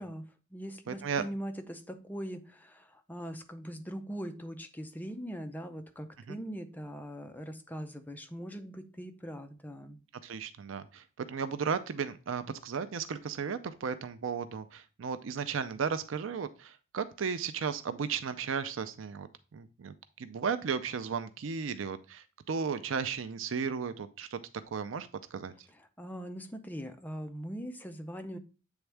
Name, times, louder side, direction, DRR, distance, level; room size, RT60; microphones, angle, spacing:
voice 1, 0.0-10.0 25.7-28.4, equal, 10° left, 0.5 m, -41 dB
voice 2, 0.9-1.2 6.3-6.4 10.2-19.3 19.5-24.4 24.7-25.5, right 6 dB, 80° right, 0.5 m, -35 dB
8.0 x 3.6 x 3.3 m
head